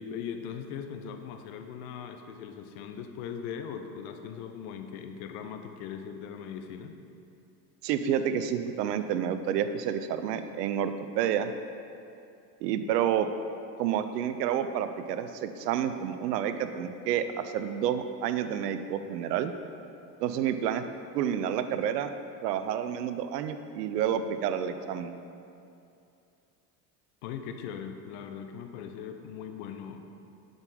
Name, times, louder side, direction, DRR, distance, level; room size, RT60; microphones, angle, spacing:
voice 1, 0.0-7.0 27.2-30.1, left 7 dB, 65° left, 6 dB, 0.9 m, -40 dB
voice 2, 7.8-11.5 12.6-13.3 13.8-19.5 20.2-20.8 21.1-22.1 22.4-25.2, right 9 dB, 75° right, 10 dB, 0.7 m, -29 dB
8.0 x 5.3 x 5.5 m, 2.6 s
hypercardioid pair, 75°, 49 cm